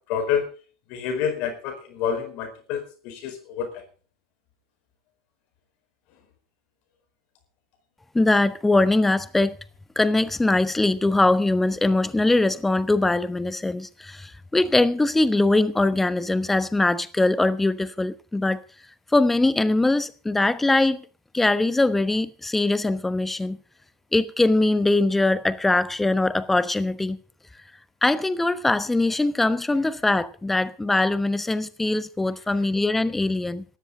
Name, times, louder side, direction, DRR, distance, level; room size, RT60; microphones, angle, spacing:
voice 1, 0.1-0.4 0.9-3.7, left 7 dB, 50° left, 4.6 m, -28 dB
voice 2, 8.1-9.6 10.0-18.6 19.1-21.0 21.3-23.6 24.1-27.2 28.0-33.6, left 2 dB, 10° left, 1.0 m, -22 dB
18.0 x 14.0 x 3.8 m
hypercardioid pair, 85°, 2 cm